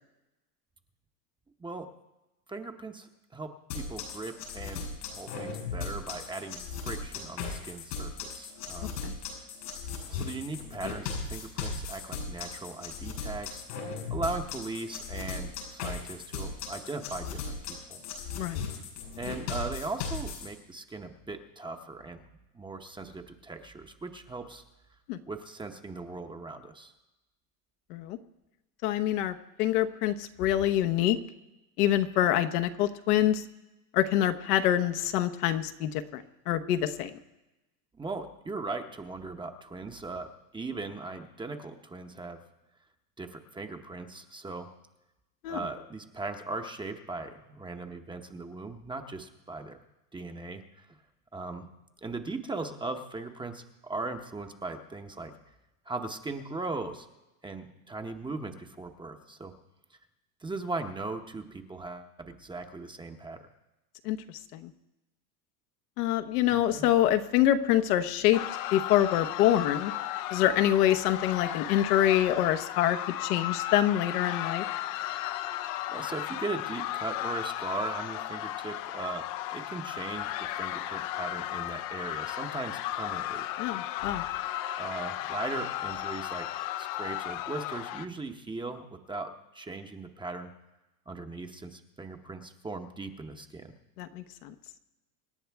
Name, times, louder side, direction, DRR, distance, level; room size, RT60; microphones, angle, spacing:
voice 1, 2.5-4.8 5.1-8.9 10.1-13.6 14.1-18.0 19.2-24.6 25.3-26.9 37.9-42.4 43.2-44.7 45.5-49.8 50.1-51.0 51.3-51.7 52.0-55.3 55.9-57.1 57.4-59.5 60.4-63.5 66.5-66.9 75.9-83.5 84.8-86.5 86.8-90.5 91.1-93.7, right 3 dB, 10° right, 5 dB, 0.9 m, -39 dB
sound 1, 3.7-20.5, left 5 dB, 85° left, 5.5 m, -37 dB
voice 2, 28.8-31.2 31.8-33.4 33.9-37.2 45.4-45.6 64.0-64.2 64.5-64.7 66.0-68.4 68.7-69.9 70.3-74.6 83.6-84.2 94.0-94.5, left 12 dB, 70° left, 9 dB, 1.1 m, -26 dB
sound 2, 68.3-88.1, left 14 dB, 45° left, 0.6 m, -35 dB
26.0 x 10.0 x 3.5 m, 1.0 s
supercardioid pair, 125°, 47 cm